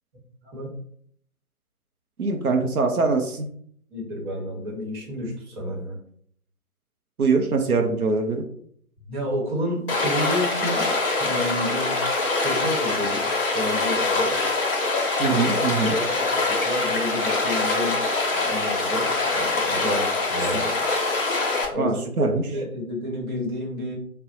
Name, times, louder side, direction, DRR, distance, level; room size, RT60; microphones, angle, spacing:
voice 1, 0.4-0.7 3.9-6.0 9.1-12.0 12.4-14.5 15.0-15.4 15.8-18.0 18.3-20.8 21.7-24.0, equal, 35° right, -1 dB, 1.2 m, -30 dB
voice 2, 2.2-3.5 7.2-8.5 15.2-16.0 21.8-22.4, right 4 dB, 80° right, 3 dB, 0.7 m, -23 dB
Stream, 9.9-21.7, left 3 dB, 40° left, 0.9 m, -24 dB
4.9 x 2.2 x 2.5 m, 0.62 s
figure-of-eight pair, 130°, 43 cm